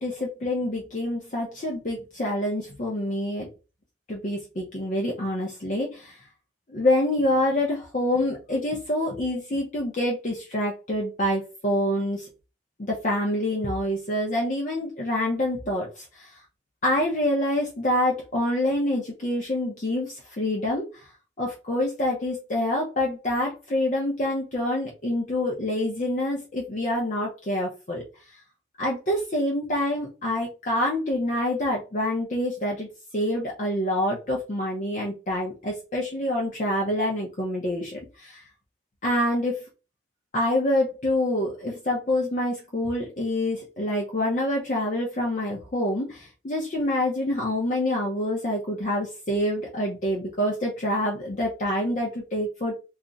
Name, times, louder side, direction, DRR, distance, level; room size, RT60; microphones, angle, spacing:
voice 1, 0.0-3.5 4.1-6.2 6.7-12.3 12.8-16.4 16.8-21.1 21.4-28.0 28.3-28.4 28.8-32.9 33.1-38.5 39.0-39.6 40.3-52.7, left 1 dB, 40° left, -2 dB, 0.6 m, -26 dB
2.4 x 2.1 x 3.8 m, 0.31 s
head